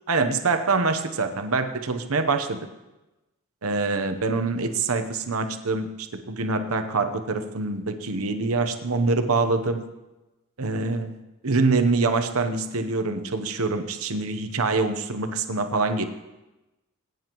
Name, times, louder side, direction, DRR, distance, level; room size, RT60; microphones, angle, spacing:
voice 1, 0.1-2.6 3.6-9.8 10.6-11.1 11.4-16.0, right 3 dB, 75° right, 8 dB, 1.0 m, -25 dB
20.0 x 9.5 x 3.1 m, 1.0 s
head